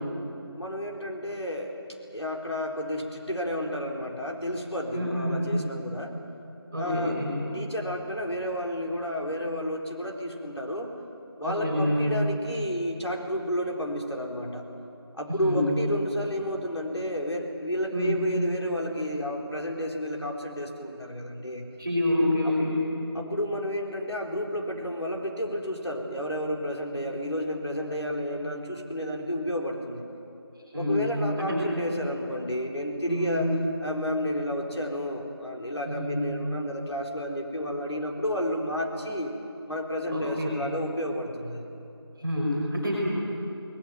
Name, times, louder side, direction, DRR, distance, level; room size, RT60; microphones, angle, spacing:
voice 1, 0.6-1.8 2.1-6.1 6.8-7.2 7.5-10.9 11.4-14.7 15.2-21.7 22.4-22.5 23.1-30.1 30.7-33.5 33.8-39.3 39.7-41.7, equal, 90° left, 1 dB, 4.3 m, -31 dB
voice 2, 4.9-5.4 6.7-7.3 11.4-12.1 15.3-15.6 17.9-18.2 21.8-22.8 30.7-31.0 31.4-31.6 33.1-33.5 35.8-36.2 40.1-40.6 42.2-43.1, left 1 dB, 5° right, -14 dB, 3.6 m, -27 dB
21.5 x 19.5 x 9.2 m, 2.7 s
figure-of-eight pair, 175°, 14 cm